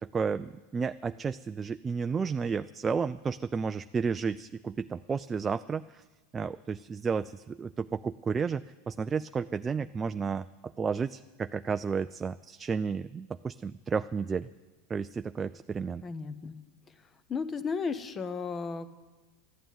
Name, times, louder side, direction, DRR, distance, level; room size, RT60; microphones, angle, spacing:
voice 1, 0.0-6.0 6.3-10.5 10.8-14.5 14.9-16.0, right 5 dB, 20° right, 11 dB, 0.4 m, -32 dB
voice 2, 16.0-16.6 17.3-18.9, left 5 dB, 25° left, 12 dB, 1.1 m, -34 dB
14.0 x 9.1 x 9.4 m, 1.2 s
hypercardioid pair, 110°, 0 cm